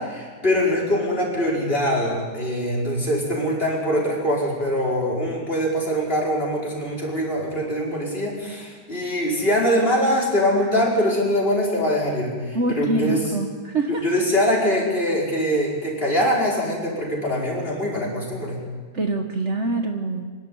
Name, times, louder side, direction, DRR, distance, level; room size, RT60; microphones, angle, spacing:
voice 1, 0.0-13.3 13.9-18.6, equal, 35° left, -4 dB, 5.6 m, -23 dB
voice 2, 12.5-14.0 18.9-20.2, right 2 dB, 45° right, 4 dB, 1.5 m, -25 dB
26.0 x 12.0 x 9.3 m, 1.5 s
omnidirectional pair, 1.8 m